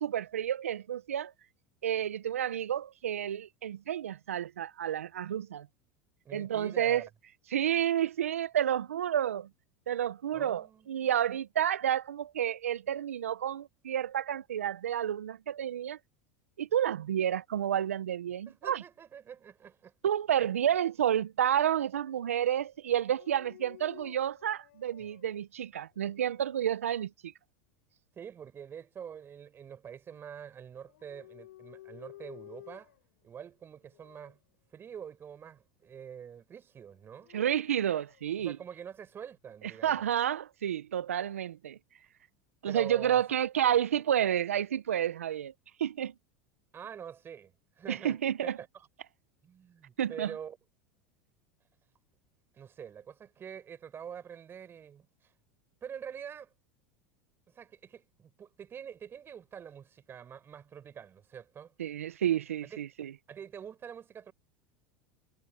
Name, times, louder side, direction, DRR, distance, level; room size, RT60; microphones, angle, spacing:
voice 1, 0.0-1.3 1.8-5.7 6.3-7.1 7.5-9.5 9.9-16.0 16.6-18.8 20.0-27.3 37.3-38.6 39.8-41.8 42.6-45.5 45.8-46.1 47.9-48.6 50.0-50.3 61.8-63.1, right 10 dB, 90° right, 0.9 m, -30 dB
voice 2, 6.2-7.1 10.3-11.1 18.5-19.9 20.4-20.6 28.2-32.9 33.2-34.4 34.7-37.3 38.4-40.1 42.7-43.2 46.7-48.2 48.6-48.7 49.4-50.6 52.5-55.3 55.8-56.5 57.5-61.7 62.6-62.8 63.3-64.3, right 8 dB, 30° right, 5.9 m, -46 dB
Dog, 23.1-25.3 25.9-26.7 30.8-33.1 33.9-34.4 36.9-38.2, left 15 dB, 80° left, 6.7 m, -53 dB
hypercardioid pair, 95°, 7 cm